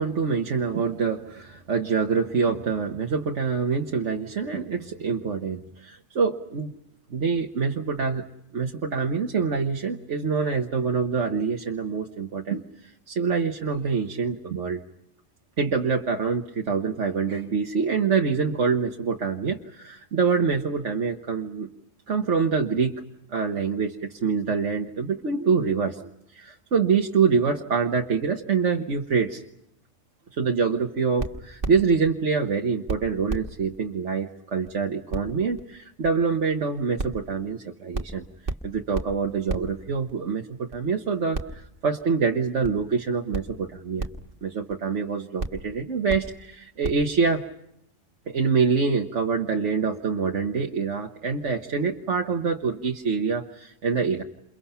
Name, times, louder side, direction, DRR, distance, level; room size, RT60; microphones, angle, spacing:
voice 1, 0.0-6.7 7.1-8.2 8.5-14.8 15.6-21.7 22.1-23.0 23.3-29.4 30.3-38.3 38.6-44.1 44.4-47.4 48.3-54.2, right 5 dB, 65° right, 2 dB, 1.6 m, -25 dB
sound 1, 31.2-32.1 32.5-32.6 32.9-33.0 33.3-33.5 33.7-33.8 34.2-34.3 34.6-34.7 35.1-35.2 35.6-35.7 36.0-36.1 36.5-36.6 37.0-37.2 37.5-37.6 37.9-38.2 38.4-38.6 38.9-39.1 39.5-39.6 40.1-40.2 40.7-40.8 41.3-41.7 42.0-42.1 42.6-42.7 43.3-43.4 44.0-44.2 44.7-44.8 45.4-45.6 46.1-46.2 46.8-46.9, right 3 dB, 45° right, 1.8 m, -30 dB
30.0 x 29.0 x 5.7 m, 0.79 s
omnidirectional pair, 1.3 m